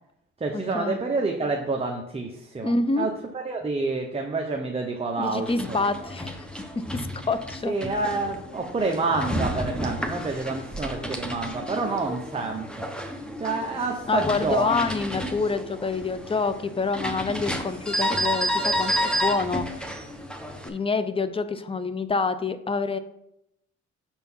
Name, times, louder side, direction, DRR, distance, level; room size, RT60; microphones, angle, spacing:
voice 1, 0.4-5.8 7.6-12.9 13.4-14.7, right 3 dB, 20° right, 2 dB, 0.9 m, -28 dB
voice 2, 2.6-3.1 5.2-6.3 6.9-7.7 14.1-19.7 20.6-23.0, left 4 dB, 20° left, 12 dB, 0.5 m, -27 dB
sound 1, 5.4-20.7, equal, 5° left, 1.0 m, -31 dB
6.8 x 4.4 x 5.5 m, 0.80 s
cardioid pair, 90°, 30 cm